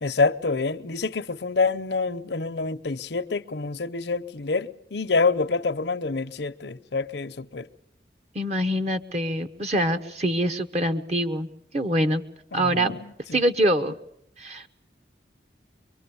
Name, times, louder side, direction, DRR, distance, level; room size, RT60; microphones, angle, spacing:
voice 1, 0.0-7.7 12.5-13.4, left 4 dB, 70° left, 0.8 m, -27 dB
voice 2, 8.3-11.5 11.7-12.2 12.5-13.0 13.3-13.9 14.4-14.7, right 1 dB, 35° right, 1.0 m, -24 dB
24.0 x 23.5 x 7.0 m
head